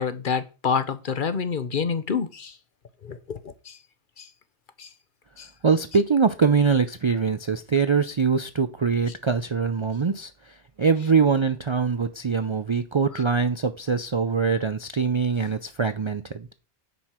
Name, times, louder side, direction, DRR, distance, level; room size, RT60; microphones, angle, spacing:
voice 1, 0.0-2.5 3.0-3.2 3.4-3.8 4.2-4.3 4.8-4.9 5.4-5.5 13.1-13.2, left 6 dB, 55° left, 0.9 m, -27 dB
voice 2, 5.6-10.3 10.8-16.5, right 5 dB, 40° right, 0.4 m, -23 dB
9.4 x 6.5 x 4.4 m
omnidirectional pair, 1.1 m